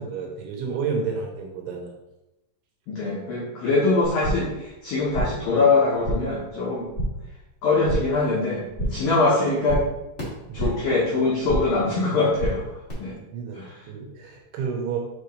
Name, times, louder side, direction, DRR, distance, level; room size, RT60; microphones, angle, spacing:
voice 1, 0.0-1.9 10.5-10.7 13.1-15.0, right 5 dB, 75° right, 1 dB, 3.2 m, -31 dB
voice 2, 2.9-6.9 7.6-9.8 10.5-12.6 13.0-13.1 13.6-13.7, left 3 dB, 85° left, -5 dB, 2.0 m, -23 dB
sound 1, 4.0-4.6 4.8-5.5 5.8-6.4 6.7-7.3 7.6-8.2 8.5-9.1 9.4-10.9 11.2-11.8 12.1-12.9, right 1 dB, 60° left, 0.7 m, -30 dB
8.1 x 4.5 x 3.2 m, 0.96 s
omnidirectional pair, 5.8 m